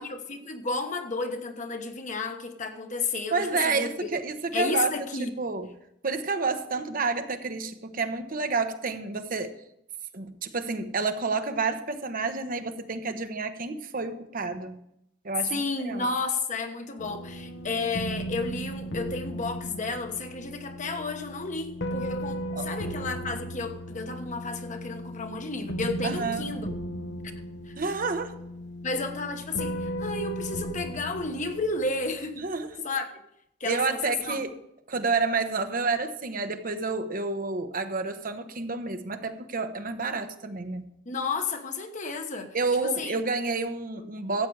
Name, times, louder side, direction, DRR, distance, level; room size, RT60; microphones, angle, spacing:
voice 1, 0.0-4.2 4.5-5.3 15.5-26.7 27.7-27.8 28.8-32.5 32.8-33.1 33.6-34.4 41.0-42.6 42.8-43.1, left 3 dB, 45° left, 1.1 m, -32 dB
voice 2, 3.3-4.9 5.2-5.7 6.0-9.5 10.1-14.8 15.2-16.1 22.5-22.7 26.0-26.5 27.8-28.3 32.4-32.9 33.6-34.5 34.9-40.9 42.5-44.5, right 4 dB, 50° right, 1.0 m, -29 dB
sound 1, 17.0-32.4, equal, 70° left, 1.1 m, -36 dB
14.0 x 8.4 x 4.8 m
head